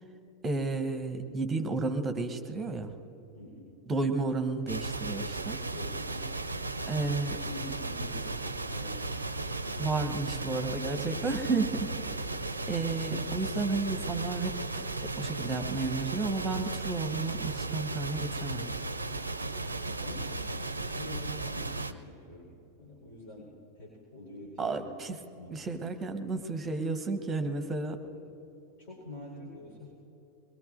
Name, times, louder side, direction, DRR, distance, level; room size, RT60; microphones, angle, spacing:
voice 1, 0.4-2.9 3.9-5.6 6.9-7.4 9.8-11.9 12.7-18.7 24.6-25.2 25.5-28.0, right 3 dB, 20° right, 8 dB, 1.0 m, -32 dB
voice 2, 3.3-3.7 5.7-6.3 7.3-9.2 19.9-25.0 25.4-25.7 28.0-28.2 28.8-29.9, left 1 dB, 50° left, -3 dB, 4.3 m, -46 dB
sound 1, 4.7-21.9, right 2 dB, 80° right, 0.5 m, -35 dB
22.5 x 21.5 x 2.6 m, 2.8 s
figure-of-eight pair, 90°, 0 cm